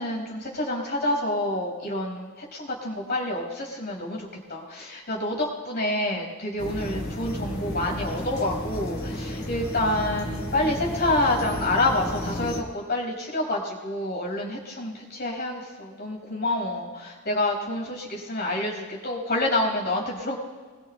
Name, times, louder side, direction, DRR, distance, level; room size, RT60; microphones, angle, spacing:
voice 1, 0.0-20.4, left 1 dB, 50° left, 0 dB, 5.5 m, -28 dB
sound 1, 6.6-12.6, left 1 dB, 65° left, 3.8 m, -33 dB
27.0 x 22.5 x 2.3 m, 1.5 s
head